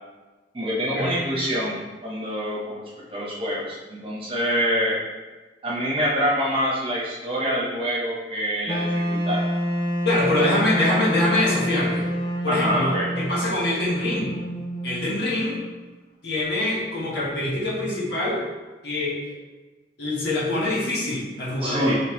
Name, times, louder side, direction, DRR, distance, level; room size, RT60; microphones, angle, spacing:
voice 1, 0.5-1.8 2.0-2.7 3.1-5.0 5.6-9.4 10.4-10.9 12.5-13.1 21.6-22.0, equal, 30° right, -6 dB, 1.1 m, -26 dB
Wind instrument woodwind instrument, 8.7-15.6, equal, 30° left, 0.5 m, -27 dB
voice 2, 10.0-12.1 12.4-14.3 14.8-15.6 16.2-18.4 18.8-19.4 20.0-22.0, left 1 dB, 60° left, -6 dB, 1.3 m, -24 dB
5.3 x 3.3 x 3.1 m, 1.2 s
head